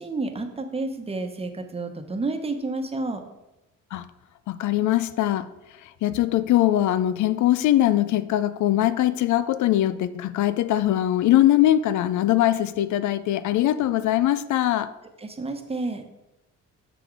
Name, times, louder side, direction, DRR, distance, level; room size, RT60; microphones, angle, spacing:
voice 1, 0.0-3.2 15.2-16.0, right 3 dB, 20° right, 1.0 m, -30 dB
voice 2, 4.5-5.5 5.8-14.9, left 13 dB, 75° left, 0.5 m, -21 dB
7.0 x 6.0 x 4.7 m
cardioid pair, 90°, 30 cm